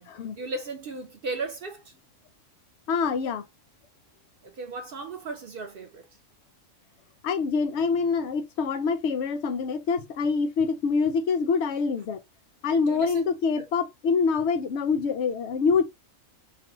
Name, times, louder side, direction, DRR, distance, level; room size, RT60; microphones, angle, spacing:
voice 1, 0.4-1.9 4.4-6.1 12.9-13.2 13.6-13.7, right 3 dB, 60° right, 0.6 m, -36 dB
voice 2, 2.9-3.4 7.2-12.2 12.6-15.8, left 5 dB, 65° left, 0.8 m, -25 dB
3.3 x 2.0 x 2.9 m
omnidirectional pair, 1.4 m